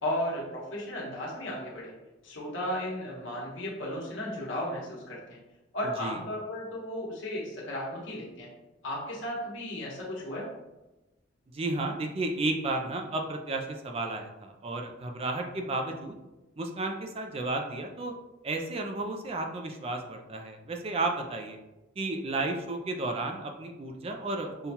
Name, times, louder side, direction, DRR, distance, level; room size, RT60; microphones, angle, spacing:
voice 1, 0.0-1.9 2.2-5.4 5.7-8.5 8.8-10.5, left 1 dB, 80° left, -4 dB, 1.1 m, -35 dB
voice 2, 11.5-16.1 16.6-18.1 18.4-21.6 22.0-24.7, right 2 dB, 30° right, 4 dB, 0.3 m, -33 dB
5.4 x 2.3 x 2.8 m, 1.0 s
head